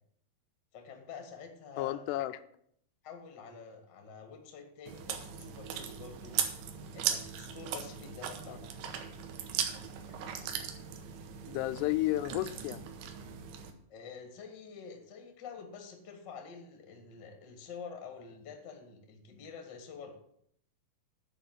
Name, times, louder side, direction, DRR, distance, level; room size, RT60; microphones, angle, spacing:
voice 1, 0.7-2.2 3.0-6.4 6.9-8.6 13.9-20.2, left 5 dB, 50° left, 4 dB, 1.3 m, -48 dB
voice 2, 1.8-2.4 8.5-8.6 11.5-12.8, left 16 dB, 85° left, 12 dB, 2.7 m, -32 dB
Chewing mastication, 4.9-13.7, right 8 dB, 80° right, 3.0 m, -38 dB
10.0 x 4.6 x 7.9 m, 0.68 s
omnidirectional pair, 4.8 m